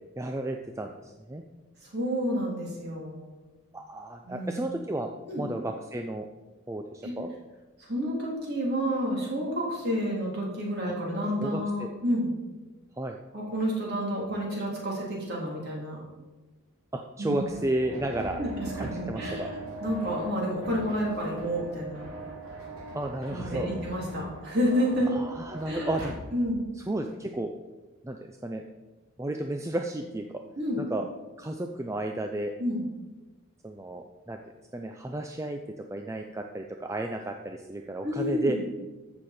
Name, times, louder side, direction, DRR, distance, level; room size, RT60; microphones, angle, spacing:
voice 1, 0.2-1.4 3.7-5.1 5.4-6.3 6.7-7.3 10.8-10.9 11.4-11.9 13.0-13.2 16.9-18.4 18.7-19.5 22.9-23.7 25.1-26.2 26.8-27.5 28.0-28.6 29.2-30.4 30.8-31.0 31.4-32.5 33.6-34.4 34.7-35.6 35.9-38.6, right 1 dB, 15° right, 4 dB, 0.4 m, -33 dB
voice 2, 1.9-3.3 4.2-4.6 5.3-5.4 7.0-7.1 7.8-12.3 13.3-16.0 17.2-17.4 18.2-19.4 19.8-22.0 23.3-25.1 25.7-25.9 26.3-26.6 30.6-30.8 32.6-32.8 38.0-38.6, equal, 45° right, -3 dB, 3.3 m, -30 dB
sound 1, 17.5-26.1, right 1 dB, 70° right, 2.5 m, -40 dB
14.0 x 6.5 x 4.3 m, 1.2 s
head